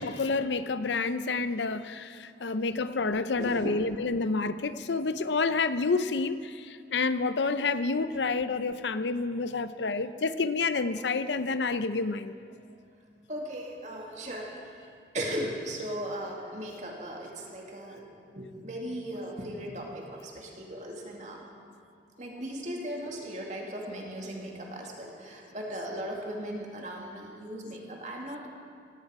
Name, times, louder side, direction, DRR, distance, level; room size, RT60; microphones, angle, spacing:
voice 1, 0.0-6.5 6.9-12.3, left 4 dB, 90° left, 12 dB, 0.7 m, -29 dB
voice 2, 3.3-3.9 9.8-10.0 13.3-14.9 15.1-18.0 18.3-21.4 22.2-28.5, equal, 40° right, -1 dB, 2.4 m, -37 dB
18.0 x 16.5 x 4.8 m, 2.3 s
head